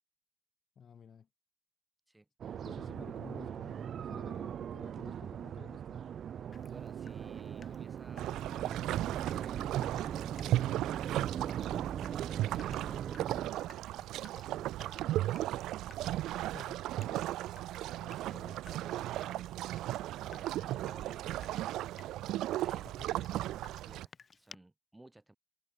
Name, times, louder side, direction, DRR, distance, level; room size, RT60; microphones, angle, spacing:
voice 1, 0.8-1.3 2.6-6.1 16.3-17.5 18.0-18.5 22.8-23.0, left 7 dB, 50° left, 2.9 m, -54 dB
sound 1, 2.4-13.5, right 9 dB, 60° right, 1.4 m, -40 dB
voice 2, 6.3-10.0 12.0-13.9 14.3-15.7 17.4-17.6 18.1-19.6 20.0-22.2 22.5-25.3, right 2 dB, 10° right, 6.2 m, -57 dB
Water tap faucet / Drip, 6.5-24.6, left 5 dB, 35° left, 2.5 m, -61 dB
sound 2, 8.2-24.1, right 14 dB, 85° right, 0.3 m, -36 dB
cardioid pair, 90°, 0 cm